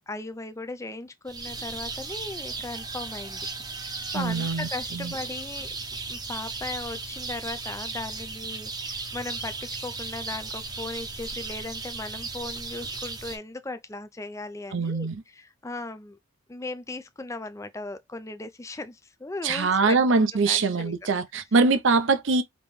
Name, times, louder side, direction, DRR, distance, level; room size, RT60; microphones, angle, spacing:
voice 1, 0.1-3.5 3.7-5.8 6.1-16.2 16.5-20.0 20.4-20.9, left 2 dB, 15° left, 0.4 m, -37 dB
sound 1, 1.3-13.4, right 3 dB, 20° right, 0.7 m, -36 dB
voice 2, 4.1-5.1 14.7-15.2 19.4-22.4, right 4 dB, 60° right, 0.6 m, -23 dB
5.2 x 3.0 x 3.1 m
head